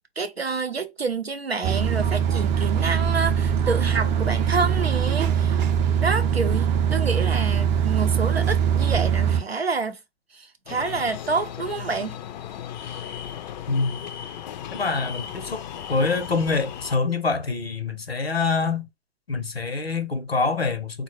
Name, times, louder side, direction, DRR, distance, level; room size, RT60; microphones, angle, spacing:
voice 1, 0.2-5.6 6.0-10.0 10.3-12.2, right 4 dB, 90° right, 0.7 m, -28 dB
sound 1, 1.6-9.4, right 8 dB, 25° right, 0.5 m, -22 dB
sound 2, 10.7-17.0, left 9 dB, 50° left, 0.4 m, -36 dB
voice 2, 14.7-15.6 15.9-18.9 19.3-21.0, left 4 dB, 90° left, 0.8 m, -25 dB
3.8 x 2.2 x 3.1 m
figure-of-eight pair, 100°, 30 cm